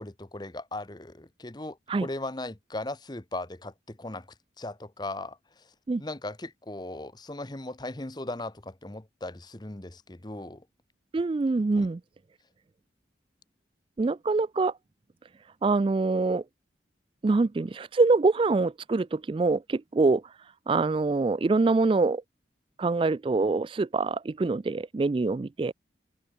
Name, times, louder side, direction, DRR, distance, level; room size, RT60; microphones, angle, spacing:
voice 1, 0.0-4.3 4.6-5.7 6.0-10.6 11.8-11.9, left 2 dB, 25° left, 1.0 m, -38 dB
voice 2, 11.1-12.0 14.0-14.7 15.6-16.4 17.2-20.2 20.7-22.2 22.8-25.7, right 3 dB, 30° right, 0.3 m, -25 dB
head